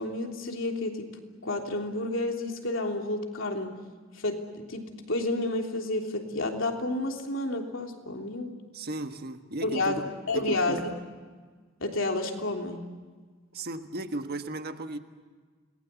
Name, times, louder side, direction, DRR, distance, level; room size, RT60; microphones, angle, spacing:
voice 1, 0.0-3.8 4.1-8.5 9.6-10.9 11.8-12.9, left 2 dB, 70° left, 2 dB, 3.3 m, -30 dB
voice 2, 8.7-10.8 13.5-15.0, right 2 dB, 50° right, 7 dB, 1.5 m, -35 dB
29.5 x 20.0 x 8.3 m, 1.5 s
head